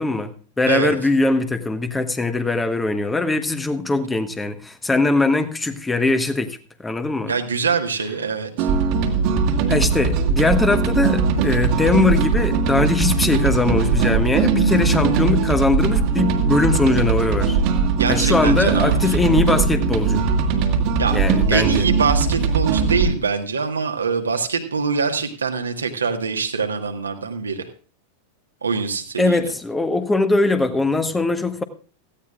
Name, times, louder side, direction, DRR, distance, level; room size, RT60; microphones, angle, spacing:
voice 1, 0.0-7.3 9.7-17.6 18.1-20.2 21.1-21.8 29.2-31.6, left 3 dB, 10° left, 10 dB, 1.2 m, -21 dB
voice 2, 7.3-8.7 17.9-19.2 21.0-21.2 21.5-27.7 28.6-29.5, right 5 dB, 75° right, 5 dB, 1.5 m, -24 dB
sound 1, 8.6-23.1, right 5 dB, 45° right, 1.7 m, -20 dB
17.0 x 15.0 x 2.4 m, 0.39 s
figure-of-eight pair, 90°, 0 cm